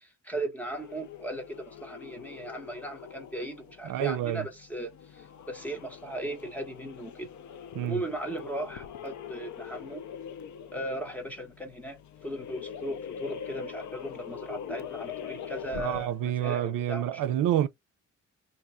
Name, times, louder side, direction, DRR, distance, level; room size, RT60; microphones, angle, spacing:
voice 1, 0.0-7.3 7.8-10.0 10.7-17.2, right 1 dB, 5° left, 1.0 m, -37 dB
sound 1, 0.6-16.3, left 8 dB, 65° left, 0.6 m, -43 dB
voice 2, 3.8-4.5 7.7-8.0 15.8-17.7, right 11 dB, 90° right, 0.5 m, -28 dB
2.8 x 2.4 x 4.2 m
cardioid pair, 155°, 31 cm